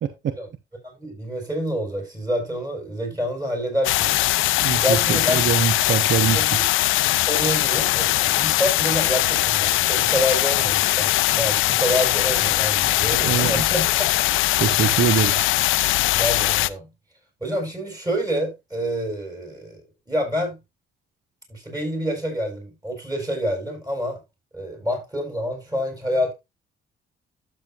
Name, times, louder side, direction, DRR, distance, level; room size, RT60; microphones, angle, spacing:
voice 1, 0.0-0.3 4.6-6.4 13.2-13.6 14.6-15.4, right 8 dB, 65° right, 1.1 m, -23 dB
voice 2, 0.8-4.2 4.8-5.4 6.3-6.6 7.3-14.1 16.2-16.9 17.4-19.8 20.1-20.6 21.5-24.2 24.5-26.3, equal, 20° right, 6.1 m, -27 dB
sound 1, 3.8-16.7, left 17 dB, 90° left, 0.5 m, -21 dB
12.5 x 7.8 x 2.4 m
cardioid pair, 90°, 20 cm